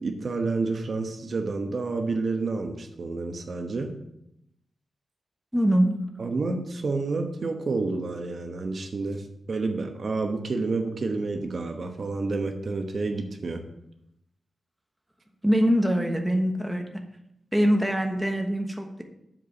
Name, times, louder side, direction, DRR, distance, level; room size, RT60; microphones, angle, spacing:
voice 1, 0.0-3.9 6.2-13.6, right 3 dB, 60° right, 4 dB, 1.0 m, -29 dB
voice 2, 5.5-6.0 15.4-16.9 17.5-19.0, equal, 5° right, 3 dB, 1.1 m, -23 dB
7.8 x 4.7 x 6.9 m, 0.80 s
wide cardioid pair, 95°, 0 cm